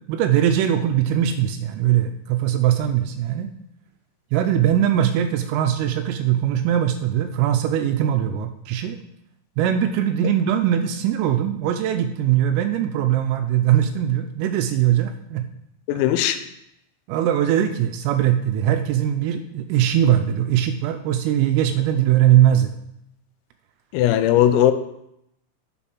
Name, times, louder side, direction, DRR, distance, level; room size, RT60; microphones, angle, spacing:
voice 1, 0.0-3.5 4.3-9.0 9.6-15.4 17.1-22.7, right 10 dB, 85° right, 7 dB, 3.2 m, -21 dB
voice 2, 15.9-16.4 23.9-24.7, left 11 dB, 90° left, 9 dB, 3.4 m, -18 dB
9.8 x 6.1 x 6.0 m, 0.79 s
omnidirectional pair, 6.0 m